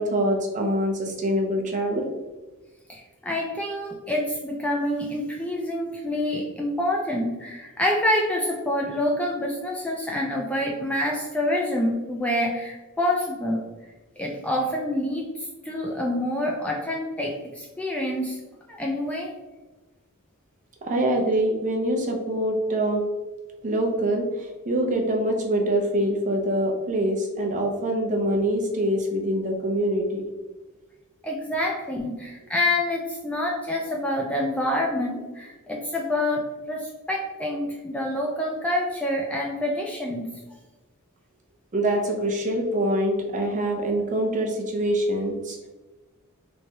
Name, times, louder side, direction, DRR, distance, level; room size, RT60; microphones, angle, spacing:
voice 1, 0.0-2.1 20.8-23.0 23.6-30.2 41.7-45.7, right 1 dB, 35° right, 0 dB, 0.7 m, -24 dB
voice 2, 2.9-13.6 14.2-18.4 18.7-19.3 31.2-40.3, left 1 dB, 5° left, -1 dB, 0.3 m, -27 dB
3.4 x 3.1 x 2.7 m, 1.2 s
head